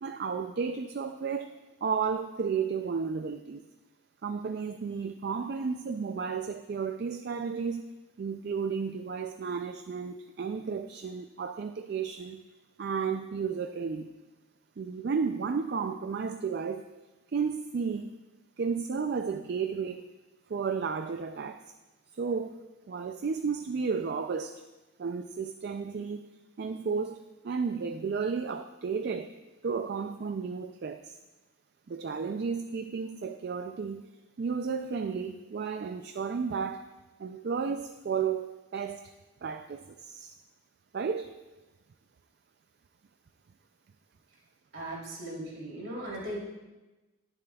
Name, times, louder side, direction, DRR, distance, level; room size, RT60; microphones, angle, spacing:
voice 1, 0.0-1.5 1.8-3.6 4.2-7.8 8.2-12.4 12.8-14.1 14.8-16.8 17.3-18.1 18.6-20.0 20.5-21.6 22.2-22.6 22.9-24.5 25.0-26.3 26.6-29.3 29.6-31.1 31.9-34.0 34.4-36.8 37.2-38.5 38.7-39.1 39.4-40.3 40.9-41.3, right 5 dB, 50° right, 8 dB, 0.3 m, -33 dB
voice 2, 44.7-46.4, right 1 dB, 70° right, -4 dB, 3.1 m, -38 dB
20.0 x 7.0 x 2.3 m, 1.1 s
head